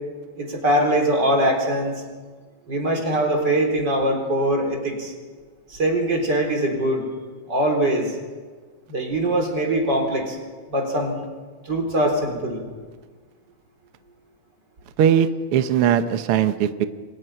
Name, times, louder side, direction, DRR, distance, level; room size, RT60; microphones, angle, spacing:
voice 1, 0.4-2.0 2.7-5.1 5.7-7.1 7.5-8.2 8.9-10.4 10.7-11.2 11.7-12.6, right 1 dB, 30° right, 2 dB, 4.3 m, -22 dB
voice 2, 15.0-16.9, right 9 dB, 65° right, 9 dB, 1.4 m, -19 dB
28.5 x 23.5 x 5.7 m, 1.4 s
omnidirectional pair, 3.7 m